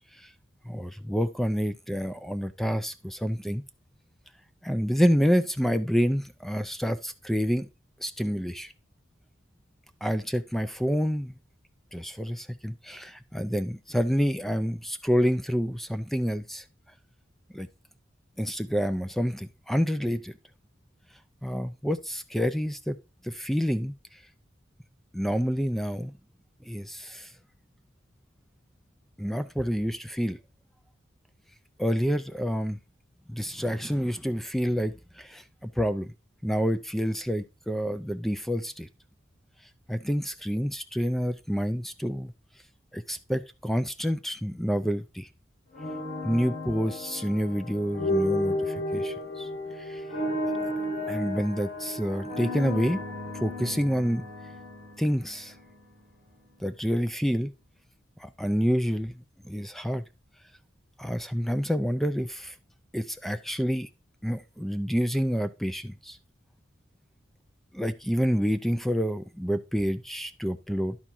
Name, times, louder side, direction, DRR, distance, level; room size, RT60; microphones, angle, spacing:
voice 1, 0.6-3.6 4.6-7.7 8.0-8.7 10.0-11.3 11.9-16.6 17.5-17.7 18.4-20.3 21.4-23.0 23.2-23.9 25.1-26.1 26.7-27.3 29.2-30.4 31.8-32.8 33.3-36.1 36.4-38.9 39.9-42.3 42.9-45.3 46.2-49.5 49.8-50.0 51.1-53.0 53.3-54.2 55.0-55.5 56.6-57.5 58.2-60.0 61.0-62.5 62.9-63.9 64.2-66.2 67.7-71.0, equal, ahead, 11 dB, 0.4 m, -28 dB
sound 1, 45.7-55.8, left 1 dB, 65° left, 2.7 m, -33 dB
11.0 x 4.5 x 3.5 m, 0.28 s
head